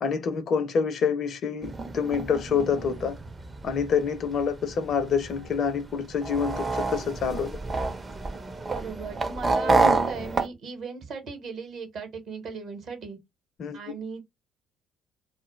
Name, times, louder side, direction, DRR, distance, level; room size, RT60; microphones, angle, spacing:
voice 1, 0.0-3.2 3.6-7.5 9.7-9.9 13.6-13.9, left 6 dB, 50° left, 0.4 m, -27 dB
sound 1, 1.6-10.5, right 3 dB, 30° right, 0.5 m, -29 dB
voice 2, 8.6-13.2 13.7-14.2, right 4 dB, 55° right, 0.8 m, -37 dB
2.2 x 2.0 x 3.0 m
figure-of-eight pair, 50°, 0 cm